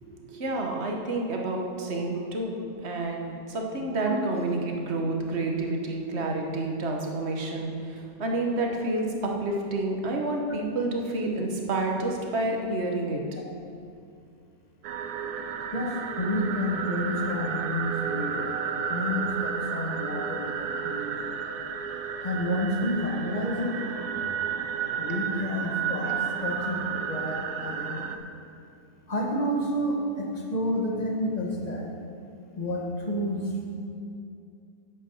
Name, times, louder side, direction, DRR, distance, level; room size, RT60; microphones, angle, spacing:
voice 1, 0.0-2.5 2.8-13.2, right 2 dB, 45° right, 1 dB, 1.4 m, -29 dB
sound 1, 14.8-28.2, right 7 dB, 90° right, 1.2 m, -32 dB
voice 2, 15.7-18.5 18.8-21.4 22.2-23.7 24.1-24.2 25.0-26.1 26.4-28.2 29.1-31.9 32.6-33.4, left 1 dB, 30° left, -1 dB, 1.4 m, -30 dB
9.4 x 8.2 x 5.5 m, 2.4 s
omnidirectional pair, 1.6 m